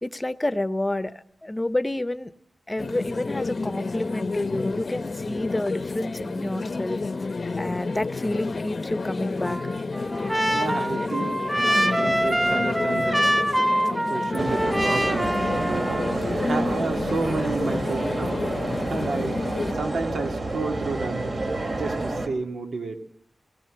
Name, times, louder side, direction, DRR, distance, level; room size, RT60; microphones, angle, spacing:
voice 1, 0.0-2.3 2.7-7.0 7.6-9.6 16.4-16.8 19.0-19.2, left 1 dB, 20° left, 13 dB, 0.8 m, -29 dB
sound 1, 2.8-19.7, left 3 dB, 50° left, 0.7 m, -31 dB
Trumpet, 9.4-16.2, right 1 dB, 15° right, 2.1 m, -25 dB
voice 2, 10.5-16.2 16.5-19.4 19.7-21.5 21.7-23.0, right 3 dB, 90° right, 4 dB, 2.1 m, -32 dB
sound 2, 14.4-22.3, right 2 dB, 55° right, 2.4 m, -29 dB
18.0 x 18.0 x 8.7 m, 0.70 s
wide cardioid pair, 85°, 0 cm